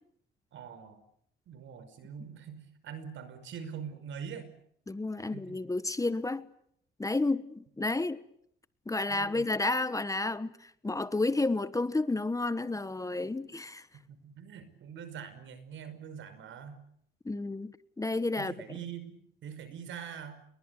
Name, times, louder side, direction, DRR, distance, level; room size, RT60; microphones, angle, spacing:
voice 1, 0.5-1.0 1.5-4.5 5.2-5.4 9.1-9.5 14.1-16.9 18.4-20.4, right 7 dB, 75° right, 5.4 m, -44 dB
voice 2, 4.9-6.5 7.0-8.2 8.9-13.9 17.2-17.7 18.0-18.5, left 2 dB, 15° left, 1.3 m, -31 dB
29.5 x 22.5 x 8.3 m
cardioid pair, 90°, 20 cm